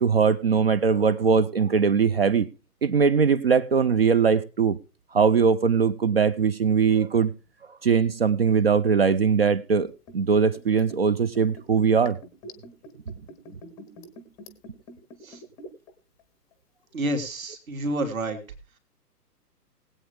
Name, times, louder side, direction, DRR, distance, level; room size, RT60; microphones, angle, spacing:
voice 1, 0.0-2.5 2.8-4.8 5.1-7.3 7.8-12.2, right 6 dB, 40° right, 0.6 m, -21 dB
Liquid, 9.7-15.9 16.2-16.3, equal, 5° left, 0.8 m, -45 dB
voice 2, 16.9-18.4, right 1 dB, 55° right, 3.1 m, -29 dB
20.0 x 8.4 x 3.4 m
figure-of-eight pair, 130°, 48 cm